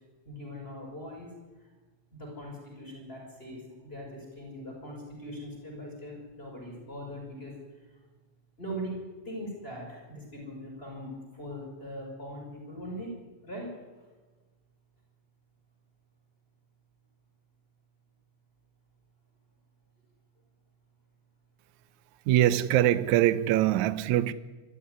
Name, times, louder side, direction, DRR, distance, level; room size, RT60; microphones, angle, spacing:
voice 1, 0.2-1.3 2.2-7.5 8.6-13.1 13.4-13.7, equal, 15° left, 6.0 m, -41 dB
voice 2, 22.3-24.3, right 13 dB, 70° right, 1.9 m, -23 dB
23.5 x 14.5 x 9.9 m
omnidirectional pair, 4.2 m